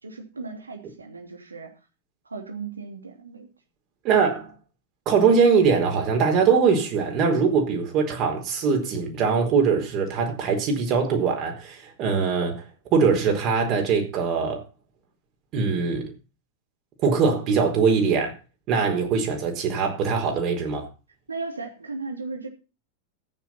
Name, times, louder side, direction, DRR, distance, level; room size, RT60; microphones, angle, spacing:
voice 1, 0.0-1.7 2.2-3.5 21.3-22.5, right 4 dB, 80° right, 3.1 m, -36 dB
voice 2, 4.0-4.5 5.0-12.6 12.9-14.6 15.5-16.1 17.0-18.3 18.7-20.9, right 5 dB, 40° right, 4.6 m, -22 dB
14.0 x 9.8 x 4.5 m
figure-of-eight pair, 90°, 0 cm